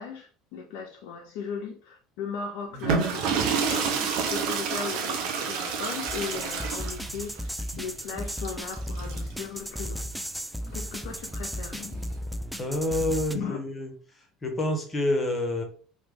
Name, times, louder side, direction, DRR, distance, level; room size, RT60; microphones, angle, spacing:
voice 1, 0.0-10.1 10.7-12.0 13.3-13.6, left 6 dB, 65° left, 2 dB, 0.4 m, -37 dB
sound 1, 2.7-9.4 10.7-12.1, right 5 dB, 65° right, 0.5 m, -29 dB
sound 2, 6.1-13.4, equal, ahead, 0.4 m, -35 dB
voice 2, 12.6-13.9 14.4-15.6, left 1 dB, 25° left, 4 dB, 0.9 m, -27 dB
3.1 x 2.1 x 3.3 m, 0.43 s
hypercardioid pair, 65°, 0 cm